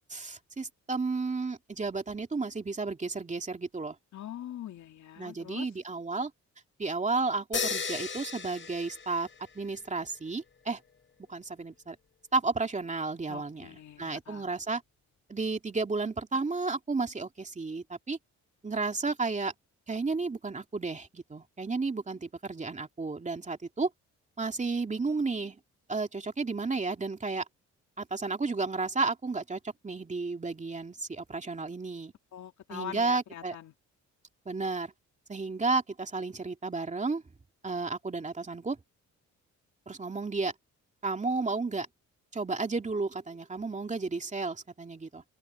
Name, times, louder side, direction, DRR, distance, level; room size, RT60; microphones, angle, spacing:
voice 1, 0.1-4.0 5.2-6.3 6.8-9.3 9.5-10.8 11.3-12.0 12.3-14.8 15.3-18.2 18.6-19.5 19.9-23.9 24.4-25.6 25.9-27.4 28.0-32.1 32.7-33.6 34.5-34.9 35.3-37.2 37.6-38.8 39.9-40.5 41.0-41.9 42.3-45.2, right 3 dB, 25° right, 2.6 m, -32 dB
voice 2, 4.1-5.7 13.3-14.4 32.3-33.7, left 11 dB, 70° left, 2.7 m, -43 dB
sound 1, 7.5-9.7, left 5 dB, 40° left, 4.8 m, -35 dB
open air
cardioid pair, 90°, 30 cm